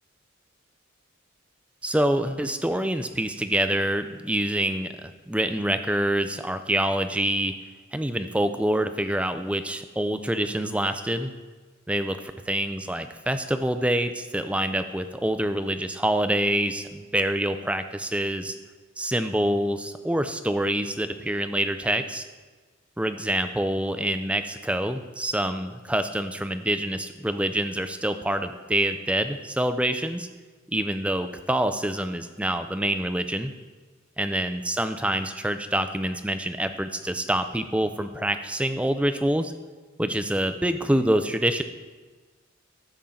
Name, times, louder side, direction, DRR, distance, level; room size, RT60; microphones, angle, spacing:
voice 1, 1.8-7.5 7.9-11.3 11.9-12.2 12.5-18.6 19.0-22.3 23.0-30.3 30.7-33.5 34.2-39.5 40.0-41.6, right 1 dB, 5° right, 9 dB, 0.4 m, -26 dB
14.5 x 7.2 x 3.8 m, 1.4 s
head